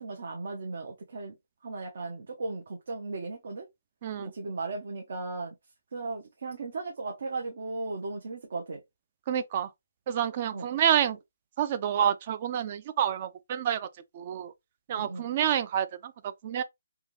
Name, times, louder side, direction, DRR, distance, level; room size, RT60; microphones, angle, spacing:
voice 1, 0.0-1.3 1.6-3.7 4.2-5.5 5.9-8.8 10.5-10.7 11.1-11.2 15.0-15.3, right 3 dB, 60° right, 0.9 m, -36 dB
voice 2, 9.3-9.7 10.1-11.2 11.6-13.9 14.1-14.5 14.9-16.1 16.4-16.6, right 9 dB, 35° right, 0.4 m, -28 dB
3.6 x 2.3 x 2.9 m
hypercardioid pair, 160°, 0 cm